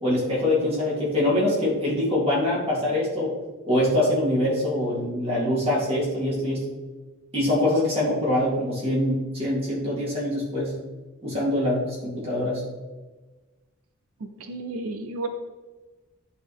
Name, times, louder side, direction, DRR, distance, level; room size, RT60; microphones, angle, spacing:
voice 1, 0.0-3.3 3.7-6.7 7.3-10.7 11.2-12.6, left 1 dB, 30° right, -7 dB, 2.4 m, -24 dB
voice 2, 14.4-15.3, right 3 dB, 85° right, 7 dB, 0.5 m, -32 dB
10.5 x 4.1 x 3.5 m, 1.2 s
head